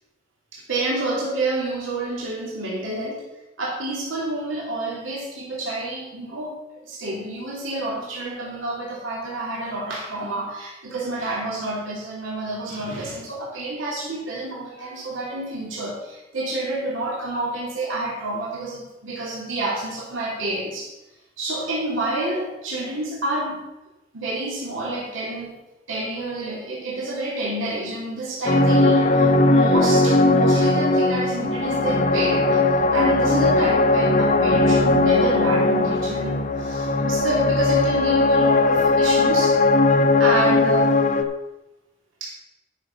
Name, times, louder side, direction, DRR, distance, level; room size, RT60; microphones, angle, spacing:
voice 1, 0.5-3.2 3.6-6.5 6.8-20.9 21.4-23.6 24.1-25.5 25.9-32.6 32.9-39.6 40.2-41.0 42.2-42.3, right 2 dB, 90° right, -5 dB, 2.8 m, -28 dB
sound 1, 28.4-41.2, left 2 dB, 40° left, 0.7 m, -18 dB
10.5 x 6.5 x 5.5 m, 0.98 s
head